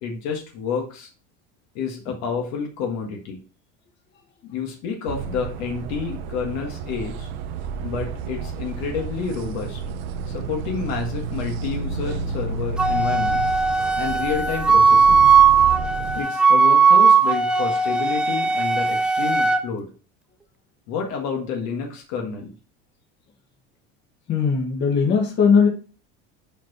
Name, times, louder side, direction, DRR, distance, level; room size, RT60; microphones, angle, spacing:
voice 1, 0.0-1.1 1.7-3.4 4.5-7.3 7.8-9.8 10.3-13.4 13.9-15.3 16.1-19.9 20.9-22.5, left 6 dB, 60° left, 2 dB, 1.6 m, -29 dB
sound 1, 5.1-16.2, right 5 dB, 85° right, 0.9 m, -31 dB
Wind instrument woodwind instrument, 12.8-19.6, right 5 dB, 5° right, 0.3 m, -17 dB
voice 2, 24.3-25.7, left 6 dB, 40° left, 1 dB, 1.8 m, -18 dB
5.9 x 4.5 x 4.8 m, 0.37 s
cardioid pair, 160°, 30 cm